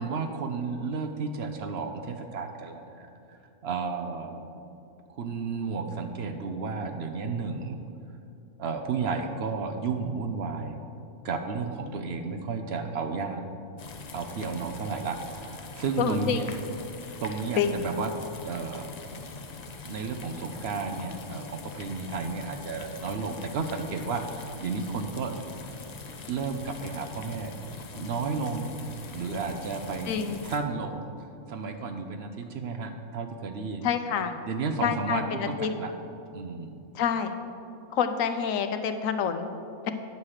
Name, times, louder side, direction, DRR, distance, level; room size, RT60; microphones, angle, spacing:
voice 1, 0.0-4.5 5.1-7.8 8.6-10.8 11.2-13.4 14.1-16.5 17.2-18.1 18.4-18.9 19.8-25.3 26.3-27.5 27.9-28.7 29.1-30.1 30.4-31.0 31.5-33.9 34.4-35.9 36.3-36.8, right 4 dB, 60° right, 6 dB, 0.7 m, -32 dB
sound 1, 13.8-30.6, left 3 dB, 55° left, 0.4 m, -43 dB
voice 2, 16.0-16.5 17.6-17.8 30.1-30.4 33.8-34.3 34.8-35.7 36.9-37.3 37.9-39.5 39.8-39.9, left 7 dB, 70° left, 8 dB, 1.0 m, -27 dB
9.5 x 7.2 x 4.8 m, 2.6 s
omnidirectional pair, 1.5 m